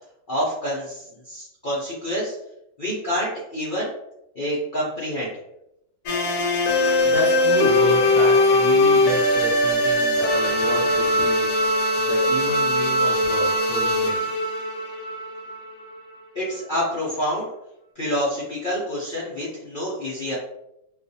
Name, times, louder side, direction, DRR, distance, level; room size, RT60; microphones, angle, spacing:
voice 1, 0.3-2.4 2.8-3.9 4.4-5.3 16.3-17.5 18.0-20.4, equal, 55° left, -7 dB, 0.5 m, -27 dB
sound 1, 6.1-16.0, left 1 dB, 75° left, 1.0 m, -20 dB
voice 2, 7.0-14.3, right 2 dB, 70° right, 0 dB, 1.0 m, -31 dB
2.3 x 2.3 x 2.6 m, 0.82 s
omnidirectional pair, 1.6 m